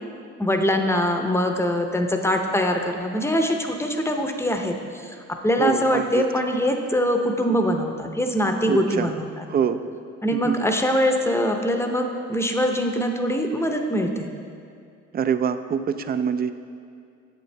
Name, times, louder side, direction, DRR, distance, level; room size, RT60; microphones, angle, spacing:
voice 1, 0.4-4.7 5.0-5.2 5.4-9.3 10.2-14.3, equal, 10° left, 4 dB, 0.7 m, -23 dB
voice 2, 5.6-6.2 7.5-7.6 8.7-9.2 9.5-9.8 10.3-10.6 15.1-16.5, right 7 dB, 30° right, 11 dB, 0.4 m, -25 dB
8.0 x 7.7 x 3.3 m, 2.3 s
cardioid pair, 90°, 30 cm